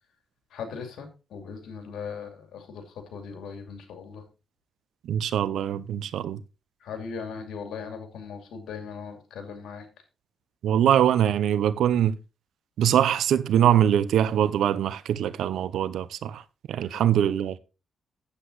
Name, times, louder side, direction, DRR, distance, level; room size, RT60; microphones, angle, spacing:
voice 1, 0.5-2.8 3.1-4.2 6.8-9.8 16.8-17.0, left 6 dB, 90° left, 2.5 m, -38 dB
voice 2, 5.1-6.4 10.6-12.1 12.8-16.4 16.7-17.6, right 10 dB, 85° right, 0.7 m, -23 dB
9.8 x 8.2 x 4.0 m
cardioid pair, 80°, 0 cm